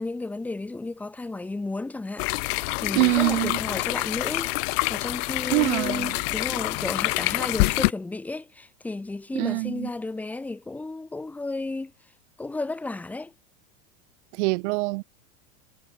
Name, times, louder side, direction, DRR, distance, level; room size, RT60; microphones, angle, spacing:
voice 1, 0.0-2.3 2.8-4.6 4.9-11.9 12.4-13.3, left 2 dB, 5° left, 0.5 m, -33 dB
sound 1, 2.2-7.9, left 30 dB, 55° left, 0.5 m, -26 dB
voice 2, 2.9-3.6 5.5-6.2 9.3-9.9 14.3-15.0, right 26 dB, 60° right, 0.7 m, -24 dB
supercardioid pair, 160°, 39 cm